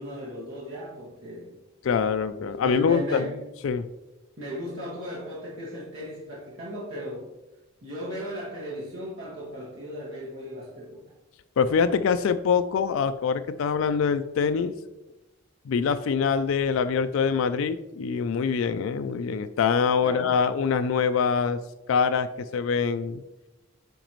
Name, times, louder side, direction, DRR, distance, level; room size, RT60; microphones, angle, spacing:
voice 1, 0.0-1.5 2.6-3.4 4.4-7.3 7.8-11.1 20.0-20.3, equal, 65° right, -6 dB, 1.8 m, -36 dB
voice 2, 1.8-3.3 3.6-3.9 11.6-14.7 15.7-21.6 21.9-23.2, left 6 dB, 70° left, 10 dB, 0.3 m, -24 dB
9.0 x 5.1 x 3.0 m, 0.99 s
head